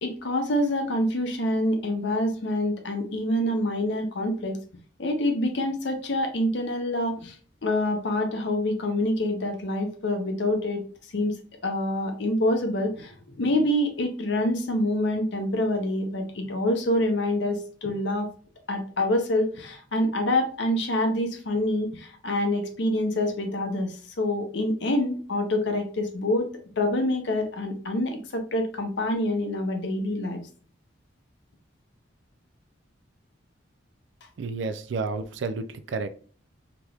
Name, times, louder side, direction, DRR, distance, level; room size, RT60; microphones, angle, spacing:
voice 1, 0.0-4.6 5.0-7.4 7.6-10.8 11.1-11.3 11.6-18.3 18.7-26.5 26.8-30.4, left 1 dB, 60° left, 5 dB, 0.6 m, -26 dB
voice 2, 34.4-36.1, right 4 dB, 65° right, 11 dB, 0.3 m, -31 dB
3.3 x 2.9 x 2.3 m, 0.43 s
head